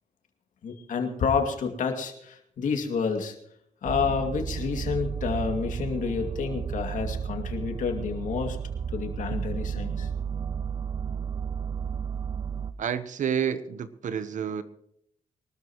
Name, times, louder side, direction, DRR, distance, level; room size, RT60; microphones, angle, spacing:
voice 1, 0.6-3.4 3.8-8.6 8.9-10.1, left 5 dB, 65° left, 4 dB, 2.4 m, -29 dB
sound 1, 3.9-12.7, right 7 dB, 30° right, 0.7 m, -32 dB
voice 2, 12.8-14.6, right 8 dB, 65° right, 13 dB, 1.1 m, -29 dB
24.0 x 13.0 x 3.1 m, 0.72 s
cardioid pair, 90°, 14 cm